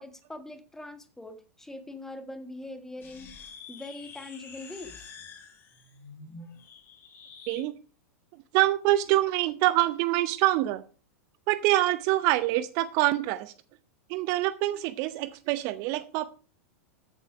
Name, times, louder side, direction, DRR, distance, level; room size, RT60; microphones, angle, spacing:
voice 1, 0.0-3.3 3.7-5.1, left 2 dB, 5° left, 8 dB, 1.8 m, -42 dB
sound 1, 3.0-7.7, left 5 dB, 30° left, 4.2 m, -47 dB
voice 2, 8.5-10.8 11.5-13.5 14.1-16.2, right 16 dB, 45° right, 15 dB, 0.7 m, -25 dB
14.0 x 8.2 x 4.9 m, 0.37 s
figure-of-eight pair, 95°, 8 cm